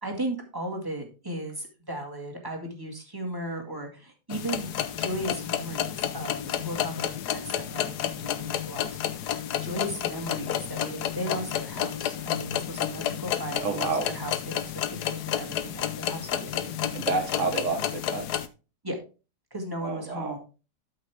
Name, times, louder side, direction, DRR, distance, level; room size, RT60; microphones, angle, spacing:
voice 1, 0.0-4.7 5.0-16.9 17.7-17.8 18.8-19.0 19.5-20.4, right 1 dB, 10° right, 1 dB, 1.9 m, -36 dB
sound 1, 4.3-18.5, left 10 dB, 70° left, 1.2 m, -31 dB
voice 2, 13.6-14.1 16.9-18.2 19.8-20.4, right 4 dB, 45° right, 3 dB, 1.4 m, -29 dB
12.0 x 5.8 x 3.5 m, 0.32 s
omnidirectional pair, 1.9 m